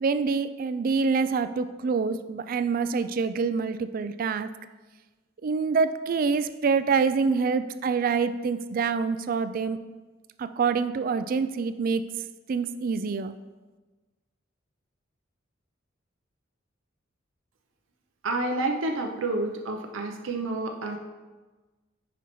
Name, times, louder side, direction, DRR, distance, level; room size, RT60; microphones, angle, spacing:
voice 1, 0.0-4.5 5.4-9.8 10.4-12.0 12.5-13.3, right 5 dB, 45° right, 11 dB, 0.3 m, -26 dB
voice 2, 18.2-21.0, right 2 dB, 90° right, 3 dB, 0.7 m, -29 dB
9.1 x 5.4 x 3.1 m, 1.3 s
head